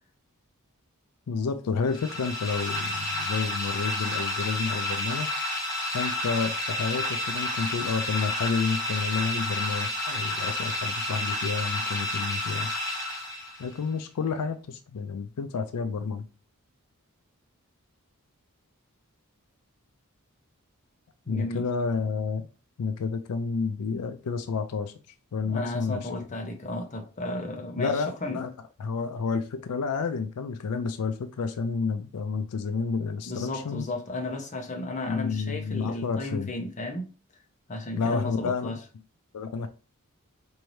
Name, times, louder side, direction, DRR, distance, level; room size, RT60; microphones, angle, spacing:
voice 1, 1.3-5.3 5.9-12.7 13.6-16.3 21.3-22.5 22.8-24.9 25.3-26.1 27.8-28.5 28.8-33.9 35.1-36.5 38.0-38.8 39.3-39.7, left 5 dB, 80° left, 0.4 m, -30 dB
sound 1, 1.9-13.7, left 1 dB, 15° left, 1.4 m, -30 dB
voice 2, 21.3-21.6 25.4-27.9 28.2-28.5 33.3-37.1 37.7-38.8, left 2 dB, 35° left, 0.7 m, -34 dB
4.5 x 2.7 x 3.1 m
head